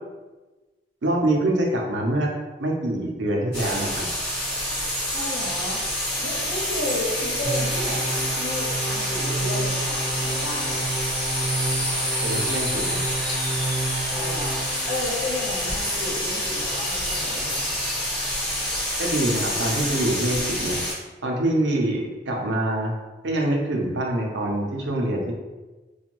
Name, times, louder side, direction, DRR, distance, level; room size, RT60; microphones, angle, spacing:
voice 1, 1.0-2.3 2.6-4.1 12.2-13.0 19.0-20.8 21.2-22.9 23.2-25.3, right 1 dB, 80° right, 0 dB, 0.5 m, -25 dB
sound 1, 3.5-20.9, equal, 15° left, 1.4 m, -27 dB
voice 2, 5.1-5.8 6.2-10.8 14.1-17.7, left 1 dB, 80° left, -5 dB, 1.0 m, -32 dB
sound 2, 7.4-15.0, right 2 dB, 55° left, 1.1 m, -30 dB
2.5 x 2.2 x 2.9 m, 1.2 s
head